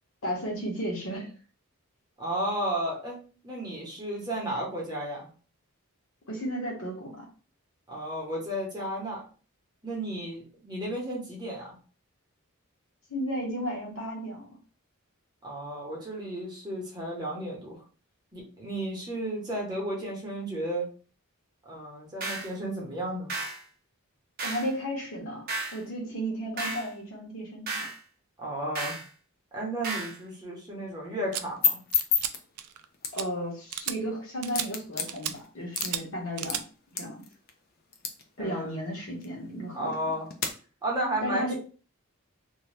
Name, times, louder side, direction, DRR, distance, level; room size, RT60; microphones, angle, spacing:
voice 1, 0.2-1.3 6.3-7.3 13.1-14.5 24.4-27.9 33.1-36.6 36.9-37.2 38.4-40.1 41.2-41.6, equal, 60° left, -1 dB, 1.1 m, -34 dB
voice 2, 2.2-3.2 3.4-5.3 7.9-9.2 9.8-11.8 15.4-17.8 18.3-20.9 21.6-23.3 28.4-29.0 29.5-31.7 38.4-38.8 39.7-40.3 40.8-41.6, right 1 dB, 20° right, -3 dB, 0.9 m, -33 dB
sound 1, 22.2-22.5 23.3-23.6 24.4-24.7 25.5-25.8 26.6-26.9 27.7-28.0 28.8-29.1 29.8-30.2, right 2 dB, 40° right, 0.6 m, -33 dB
sound 2, 31.3-40.5, left 6 dB, 45° left, 0.4 m, -34 dB
sound 3, 31.3-31.4 31.9-32.3 32.6-32.9 33.1-33.2 33.7-34.0 34.4-34.7 35.1-35.3 35.8-36.0 36.4-36.6, right 11 dB, 85° right, 0.3 m, -33 dB
2.7 x 2.2 x 3.2 m, 0.38 s
head